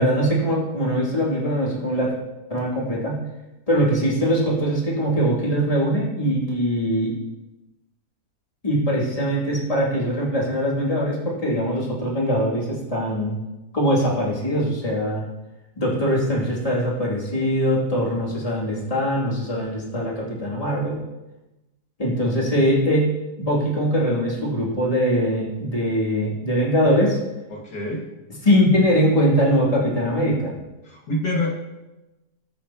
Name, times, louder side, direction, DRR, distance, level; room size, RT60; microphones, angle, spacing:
voice 1, 0.0-2.1 2.5-3.2 3.7-7.1 8.6-13.4 13.7-15.2 15.8-21.0 22.0-27.2 28.4-30.5, equal, 20° left, -5 dB, 2.8 m, -22 dB
voice 2, 27.5-28.0 30.8-31.5, left 1 dB, 80° left, -3 dB, 2.6 m, -26 dB
20.0 x 6.9 x 3.0 m, 1.0 s
omnidirectional pair, 1.7 m